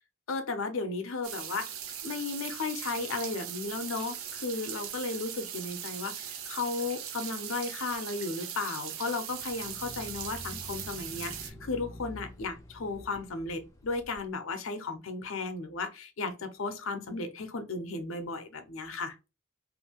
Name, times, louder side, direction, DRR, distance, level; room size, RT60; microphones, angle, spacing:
voice 1, 0.3-1.7 2.0-19.1, left 3 dB, 75° left, 0.6 m, -35 dB
sound 1, 1.2-11.5, right 9 dB, 85° right, 0.6 m, -40 dB
sound 2, 9.3-14.2, left 1 dB, 15° left, 0.5 m, -47 dB
2.7 x 2.5 x 2.8 m
head